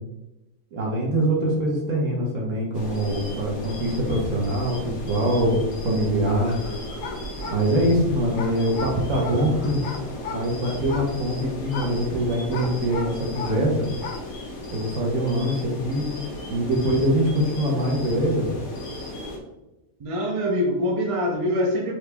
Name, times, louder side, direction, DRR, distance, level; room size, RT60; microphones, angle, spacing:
voice 1, 0.7-6.6 7.5-9.8 10.3-13.9 14.7-16.0 16.5-18.5, right 1 dB, 65° right, -2 dB, 1.4 m, -23 dB
sound 1, 2.7-19.4, left 1 dB, 90° left, 1.3 m, -35 dB
sound 2, 6.2-13.7 13.9-14.3, left 4 dB, 70° left, 1.0 m, -37 dB
voice 2, 20.0-22.0, equal, 35° right, -1 dB, 0.6 m, -24 dB
4.6 x 2.8 x 3.4 m, 0.97 s
omnidirectional pair, 1.5 m